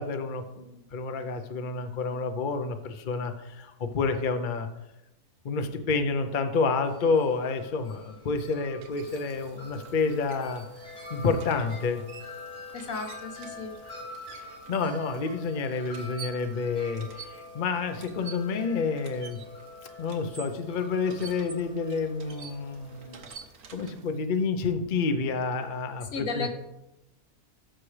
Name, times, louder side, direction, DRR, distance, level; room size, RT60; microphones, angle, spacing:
voice 1, 0.0-4.7 5.4-10.6 11.1-12.0 14.7-19.4 20.0-23.2 23.7-26.5, left 4 dB, 45° left, 7 dB, 0.7 m, -29 dB
Wind chime, 6.8-23.3, left 2 dB, 85° left, 4.2 m, -45 dB
sound 1, 8.2-24.4, right 5 dB, 75° right, 1.4 m, -50 dB
voice 2, 12.7-13.7 26.1-26.5, left 4 dB, 65° left, 5 dB, 1.3 m, -34 dB
14.0 x 5.9 x 3.3 m, 0.92 s
omnidirectional pair, 1.6 m